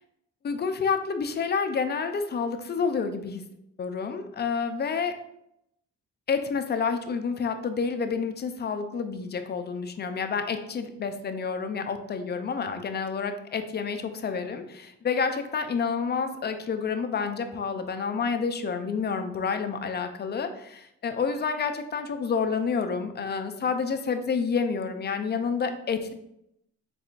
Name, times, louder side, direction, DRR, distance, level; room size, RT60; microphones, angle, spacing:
voice 1, 0.4-3.4 3.8-5.1 6.3-26.1, left 5 dB, 35° left, 7 dB, 0.5 m, -29 dB
4.1 x 3.6 x 2.4 m, 0.79 s
cardioid pair, 90°, 30 cm